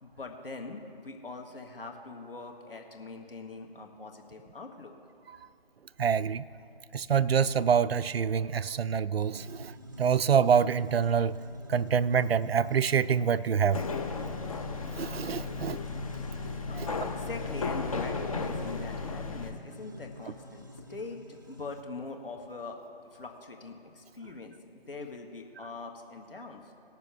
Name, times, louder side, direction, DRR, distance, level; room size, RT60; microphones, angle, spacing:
voice 1, 0.0-4.9 16.7-21.2 21.5-22.8 23.1-24.5 24.9-26.6, left 3 dB, 65° left, 3 dB, 1.6 m, -42 dB
voice 2, 6.0-6.4 6.9-11.4 11.7-13.8 15.0-15.8 16.8-16.9, right 7 dB, 75° right, 17 dB, 0.5 m, -26 dB
sound 1, 9.3-21.8, equal, 20° right, 0.4 m, -48 dB
sound 2, 13.7-19.5, left 4 dB, 35° left, 0.8 m, -35 dB
19.5 x 6.9 x 3.4 m, 2.6 s
figure-of-eight pair, 150°, 31 cm